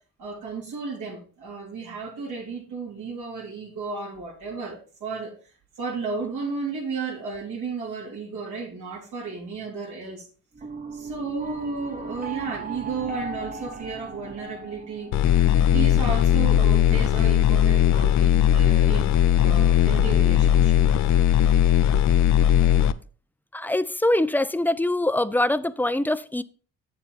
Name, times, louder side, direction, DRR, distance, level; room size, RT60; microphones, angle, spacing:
voice 1, 0.2-5.3 5.8-10.3 10.9-20.8, right 4 dB, 80° right, 3.6 m, -33 dB
sound 1, 10.5-15.6, right 3 dB, 25° right, 1.0 m, -37 dB
sound 2, 15.1-22.9, left 10 dB, 70° left, 0.6 m, -19 dB
voice 2, 23.5-26.4, left 1 dB, 5° left, 0.5 m, -23 dB
7.5 x 7.1 x 4.1 m
cardioid pair, 90°, 30 cm